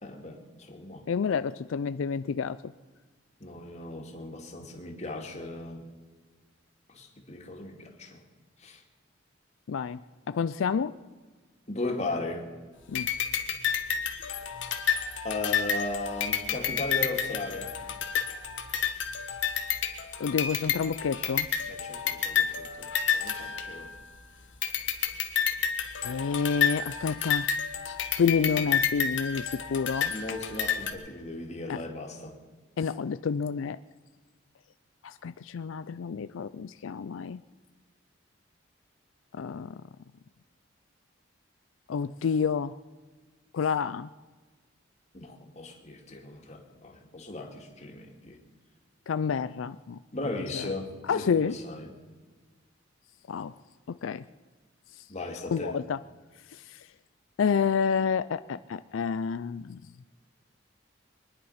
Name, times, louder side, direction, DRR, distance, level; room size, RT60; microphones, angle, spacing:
voice 1, 0.0-1.0 3.4-5.9 6.9-8.2 8.6-8.8 11.7-12.5 15.2-17.7 21.7-22.9 23.1-23.9 30.1-32.3 45.1-48.4 50.1-51.9 55.1-55.8, left 2 dB, 35° left, 2 dB, 2.4 m, -37 dB
voice 2, 1.1-2.6 9.7-10.0 10.3-11.0 12.9-13.1 20.2-21.5 23.2-23.4 26.0-27.5 28.2-30.1 31.7-31.8 32.8-33.8 35.0-37.4 39.3-39.8 41.9-42.7 43.5-44.1 49.1-50.0 50.5-50.7 51.1-51.6 53.3-53.5 53.9-54.2 55.0-55.1 55.5-56.0 56.5-56.9 57.4-59.8, left 6 dB, 85° left, 13 dB, 0.4 m, -29 dB
sound 1, 12.9-24.2 24.6-30.9, left 7 dB, 70° left, 1.5 m, -30 dB
23.5 x 10.5 x 5.7 m, 1.4 s
head